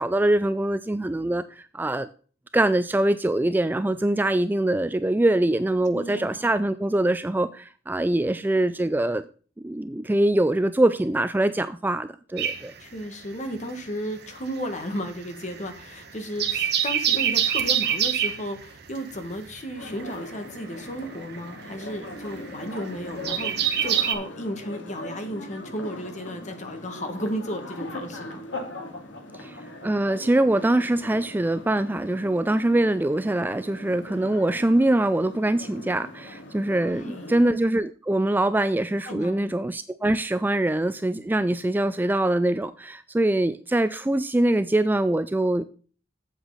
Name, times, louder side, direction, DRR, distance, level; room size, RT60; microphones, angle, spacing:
voice 1, 0.0-2.1 2.5-9.2 9.6-12.7 29.3-29.6 29.8-45.7, right 1 dB, 10° right, 12 dB, 0.3 m, -23 dB
voice 2, 5.9-6.5 12.8-28.4 36.8-37.4 39.0-39.5, equal, 40° left, 6 dB, 1.7 m, -34 dB
sound 1, 12.4-13.8 14.0-24.1, right 9 dB, 60° right, 1.3 m, -27 dB
sound 2, 19.8-37.5, left 1 dB, 80° left, 2.4 m, -40 dB
8.1 x 8.0 x 4.0 m, 0.39 s
head